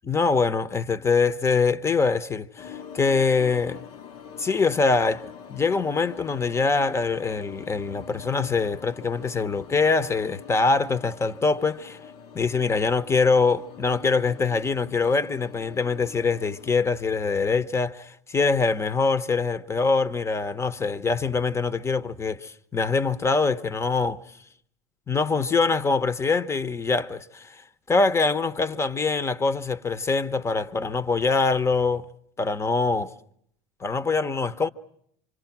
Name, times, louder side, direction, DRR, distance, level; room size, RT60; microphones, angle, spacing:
voice 1, 0.0-3.8 4.4-12.0 12.3-24.2 25.1-27.6 27.9-32.0 32.4-33.1 33.8-34.7, left 4 dB, 20° left, 0.9 m, -24 dB
sound 1, 2.6-16.7, left 8 dB, 60° left, 1.1 m, -44 dB
27.0 x 26.0 x 6.0 m
supercardioid pair, 110°, 15 cm